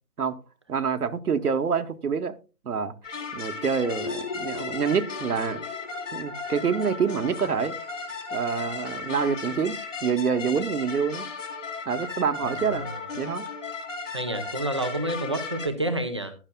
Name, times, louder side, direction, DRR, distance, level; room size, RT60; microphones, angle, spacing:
voice 1, 0.7-2.3 2.6-2.9 3.3-5.6 6.1-7.8 8.3-11.3 11.9-12.9 13.2-13.5, right 6 dB, 75° right, 7 dB, 1.2 m, -26 dB
sound 1, 3.0-15.7, left 4 dB, 55° left, 3.0 m, -36 dB
sound 2, 3.8-9.7, left 5 dB, 35° left, 1.0 m, -42 dB
voice 2, 12.4-13.0 14.1-16.3, right 1 dB, 20° right, 5 dB, 0.7 m, -29 dB
15.0 x 11.5 x 2.2 m, 0.31 s
hypercardioid pair, 165°, 45 cm